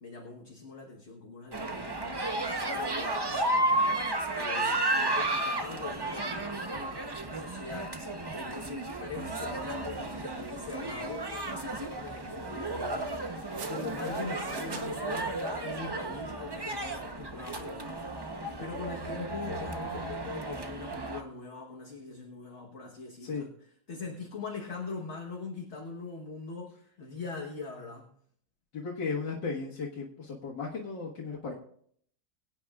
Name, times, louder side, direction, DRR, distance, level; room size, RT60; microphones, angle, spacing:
voice 1, 0.0-13.2 13.6-23.5 23.9-28.2, left 4 dB, 45° left, 1 dB, 1.4 m, -42 dB
sound 1, 1.5-21.2, right 2 dB, 40° right, 0.3 m, -33 dB
sound 2, 9.2-14.9, right 4 dB, 70° right, 1.9 m, -50 dB
voice 2, 28.7-31.5, left 4 dB, 85° left, -4 dB, 2.3 m, -35 dB
23.0 x 9.2 x 2.4 m, 0.63 s
omnidirectional pair, 1.9 m